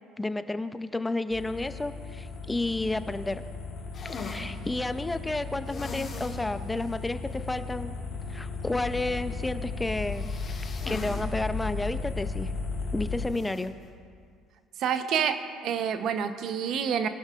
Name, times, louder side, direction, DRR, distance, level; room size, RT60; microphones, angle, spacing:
voice 1, 0.2-3.4 4.2-7.9 8.3-10.3 10.8-12.5 12.9-13.7, left 2 dB, 15° left, 11 dB, 0.6 m, -31 dB
sound 1, 1.3-13.3, left 3 dB, 65° left, 2.7 m, -35 dB
sound 2, 3.9-4.5 5.7-6.4 6.8-6.9 7.3-7.4 10.1-11.3 11.6-11.7 13.3-13.6, left 4 dB, 45° left, 3.1 m, -40 dB
voice 2, 14.8-17.1, right 8 dB, 60° right, 9 dB, 0.9 m, -28 dB
21.0 x 12.0 x 2.5 m, 2.1 s
hypercardioid pair, 65°, 0 cm